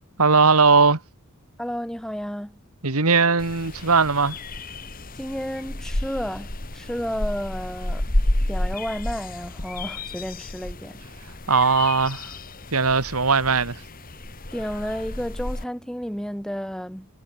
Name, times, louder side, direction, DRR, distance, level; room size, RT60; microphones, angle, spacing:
voice 1, 0.2-1.0 2.8-4.4 11.5-12.3 12.7-13.8, right 4 dB, 80° right, 2.0 m, -19 dB
voice 2, 1.6-2.6 5.1-8.1 8.5-11.0 14.5-17.1, equal, 5° left, 7.7 m, -32 dB
sound 1, 3.4-15.6, left 1 dB, 40° left, 2.4 m, -31 dB
head